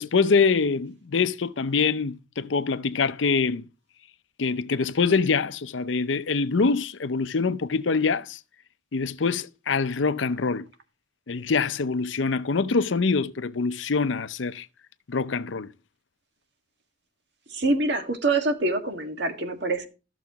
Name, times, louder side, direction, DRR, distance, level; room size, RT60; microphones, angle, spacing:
voice 1, 0.0-3.6 4.4-8.4 8.9-10.7 11.3-14.7 15.1-15.7, left 4 dB, 75° left, 0.6 m, -24 dB
voice 2, 17.5-19.9, right 2 dB, 60° right, 1.7 m, -25 dB
14.0 x 6.9 x 2.9 m
head